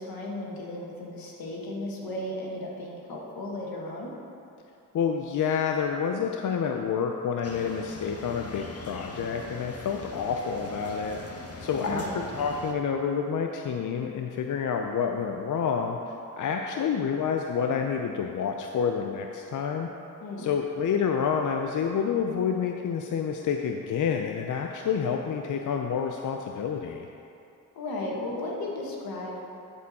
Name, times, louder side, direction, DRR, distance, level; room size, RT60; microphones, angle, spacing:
voice 1, 0.0-4.1 11.7-12.2 20.2-20.5 27.7-29.4, left 1 dB, 85° left, -2 dB, 1.4 m, -35 dB
voice 2, 4.9-11.2 11.6-19.9 20.4-27.1, left 6 dB, 60° left, 3 dB, 0.5 m, -28 dB
sound 1, 7.4-12.7, left 2 dB, 45° left, 1.0 m, -40 dB
12.0 x 4.4 x 4.2 m, 2.7 s
cardioid pair, 55°, 35 cm